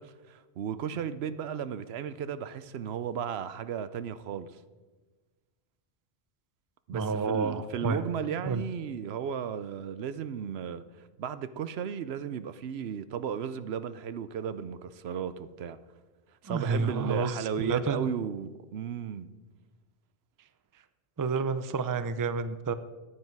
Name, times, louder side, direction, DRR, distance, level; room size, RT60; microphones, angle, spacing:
voice 1, 0.0-4.5 6.9-10.8 11.2-15.8 16.4-19.3, right 8 dB, 75° right, 13 dB, 0.9 m, -35 dB
voice 2, 6.9-8.1 8.4-8.6 16.5-18.2 21.2-22.7, right 4 dB, 25° right, 12 dB, 0.4 m, -30 dB
15.0 x 9.6 x 4.6 m, 1.3 s
omnidirectional pair, 1.1 m